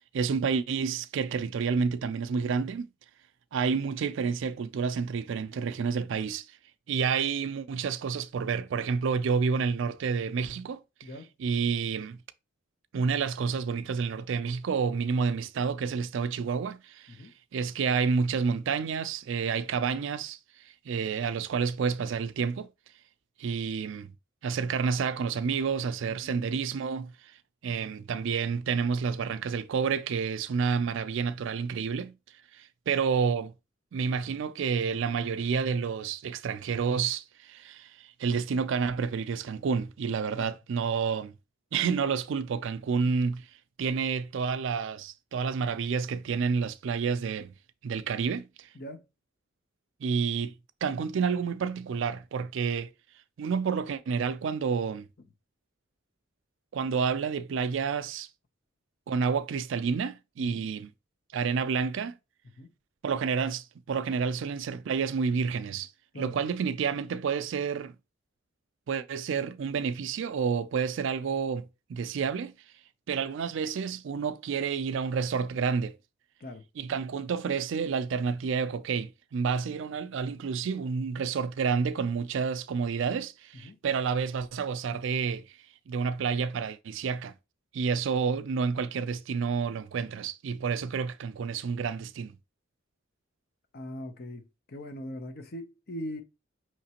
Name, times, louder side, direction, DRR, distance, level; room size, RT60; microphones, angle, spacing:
voice 1, 0.1-2.9 3.5-6.4 6.9-10.8 11.4-12.2 12.9-17.2 17.5-20.4 20.9-22.7 23.4-24.1 24.4-27.1 27.6-32.1 32.5-33.5 33.9-41.3 41.7-43.5 43.8-47.5 47.8-48.7 50.0-50.5 50.8-52.9 53.4-55.1 56.7-58.3 59.1-60.9 61.3-62.2 63.0-65.9 66.2-67.9 68.9-72.5 73.1-76.0 76.8-85.4 85.9-87.3 87.7-92.4, right 5 dB, 65° right, 0.4 m, -29 dB
voice 2, 26.1-26.5 40.4-40.5 43.0-43.1 48.7-49.0 60.4-60.7 62.6-62.7 66.1-66.3 76.4-76.6 83.6-83.8 93.7-96.2, equal, 50° left, 0.7 m, -41 dB
5.8 x 3.1 x 2.9 m
head